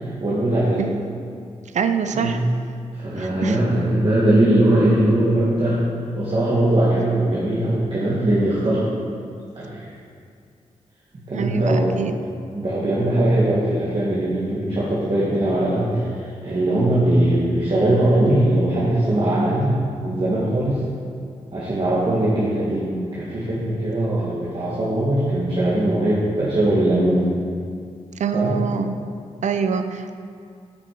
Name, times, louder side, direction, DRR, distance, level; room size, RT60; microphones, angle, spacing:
voice 1, 0.2-0.9 2.1-2.4 2.9-5.8 6.1-8.8 9.6-9.8 11.3-12.0 12.5-20.8 21.5-27.3 28.3-28.5, right 1 dB, 45° right, -8 dB, 1.8 m, -20 dB
voice 2, 1.7-2.4 3.2-3.6 11.3-12.2 28.2-29.0 29.4-30.2, right 6 dB, 65° right, 8 dB, 0.5 m, -24 dB
8.7 x 6.0 x 4.6 m, 2.3 s
cardioid pair, 65°, 13 cm